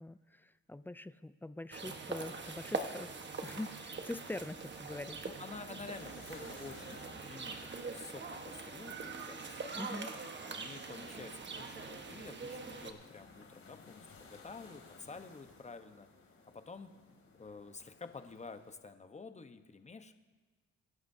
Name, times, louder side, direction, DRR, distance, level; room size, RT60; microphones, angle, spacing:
voice 1, 0.0-3.1 3.4-5.2 9.8-10.1, left 2 dB, 5° left, 14 dB, 0.4 m, -44 dB
sound 1, 1.7-12.9, right 4 dB, 35° right, 1.3 m, -43 dB
sound 2, 4.0-18.8, left 4 dB, 45° left, 2.8 m, -59 dB
voice 2, 4.9-9.6 10.5-16.1 16.5-16.9 17.4-20.1, left 4 dB, 25° left, 8 dB, 1.0 m, -50 dB
23.5 x 11.0 x 2.7 m, 1.3 s
cardioid pair, 90°, 30 cm